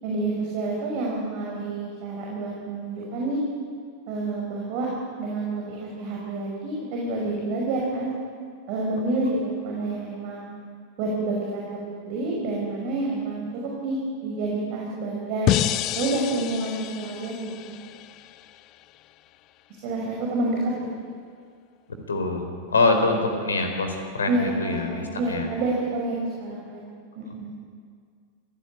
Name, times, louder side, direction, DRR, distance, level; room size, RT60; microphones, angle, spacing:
voice 1, 0.0-3.4 4.1-4.9 5.2-8.1 8.7-10.5 11.0-15.6 16.0-17.8 19.8-20.7 24.3-26.8 27.2-27.5, right 2 dB, 45° right, -2 dB, 5.6 m, -28 dB
sound 1, 15.5-18.6, left 13 dB, 40° left, 0.8 m, -28 dB
voice 2, 22.1-25.5, left 3 dB, 70° left, 5 dB, 4.2 m, -24 dB
26.5 x 17.0 x 9.1 m, 2.1 s
figure-of-eight pair, 90°, 0 cm